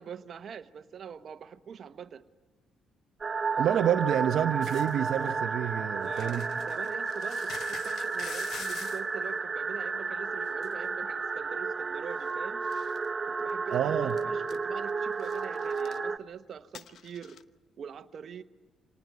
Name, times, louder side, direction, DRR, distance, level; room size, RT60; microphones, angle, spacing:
voice 1, 0.0-2.2 6.0-12.6 13.3-17.4 17.8-18.4, right 7 dB, 55° right, 9 dB, 1.1 m, -44 dB
sound 1, 3.2-16.2, right 4 dB, 30° right, 1.0 m, -32 dB
voice 2, 3.6-6.5 13.7-14.2, right 10 dB, 75° right, 6 dB, 0.8 m, -28 dB
sound 2, 4.6-5.3 6.0-9.0 10.6-10.7 12.3-12.4 12.6-13.1 13.5-13.6 14.0-14.2 14.5-14.9 15.2-16.0 16.7-17.4, left 8 dB, 65° left, 0.8 m, -46 dB
26.5 x 19.0 x 9.3 m, 1.2 s
cardioid pair, 90°, 0 cm